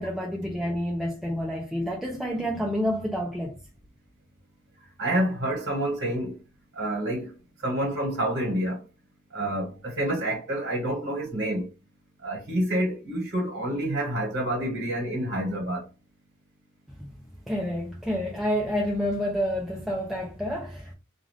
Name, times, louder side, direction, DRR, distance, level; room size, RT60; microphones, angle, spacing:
voice 1, 0.0-3.6 17.0-17.1 17.5-20.9, equal, ahead, 0.4 m, -29 dB
voice 2, 5.0-6.4 6.7-7.3 7.6-8.8 9.3-11.7 12.2-15.9, right 1 dB, 55° right, 1.3 m, -28 dB
2.5 x 2.4 x 3.2 m
head